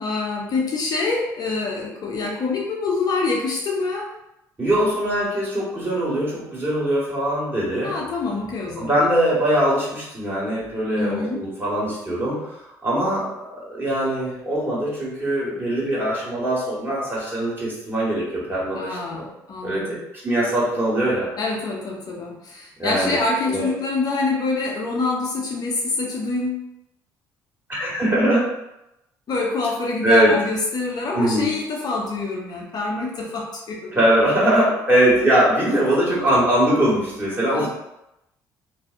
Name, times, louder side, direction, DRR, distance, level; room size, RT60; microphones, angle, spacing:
voice 1, 0.0-4.1 7.8-9.0 10.9-11.4 18.5-20.0 21.4-26.7 29.3-33.9 36.1-36.2 37.5-37.7, left 3 dB, 50° left, -2 dB, 0.6 m, -26 dB
voice 2, 4.6-7.9 8.8-19.2 19.6-20.0 20.2-21.3 22.8-23.2 23.5-23.7 27.7-28.5 30.0-30.3 31.1-31.5 33.9-37.7, right 1 dB, 25° right, -7 dB, 1.5 m, -21 dB
2.5 x 2.0 x 2.5 m, 0.87 s
hypercardioid pair, 60°, 9 cm